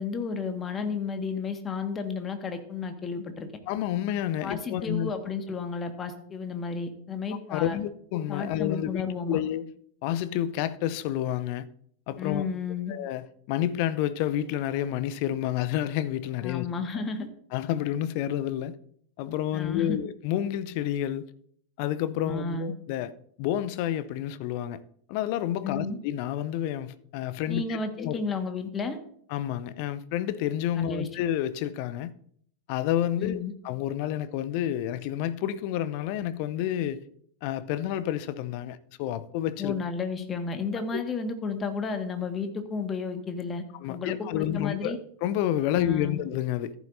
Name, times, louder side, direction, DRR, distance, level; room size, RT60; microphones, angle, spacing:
voice 1, 0.0-3.5 4.4-7.8 8.3-9.4 12.2-12.9 16.4-17.3 19.5-20.0 22.2-22.7 25.6-26.0 27.5-29.0 30.7-31.1 33.2-33.5 39.6-45.0 45.7-46.2, left 4 dB, 20° left, 1.6 m, -32 dB
voice 2, 3.7-5.1 7.5-9.7 10.0-11.7 12.1-12.5 12.9-16.7 17.5-18.7 19.2-21.3 21.8-23.1 23.4-24.8 25.1-28.2 29.3-32.1 32.7-33.4 33.6-37.0 37.4-39.7 40.9-41.0 43.8-46.7, left 11 dB, 45° left, 0.6 m, -29 dB
14.5 x 11.0 x 2.6 m
figure-of-eight pair, 90°, 0 cm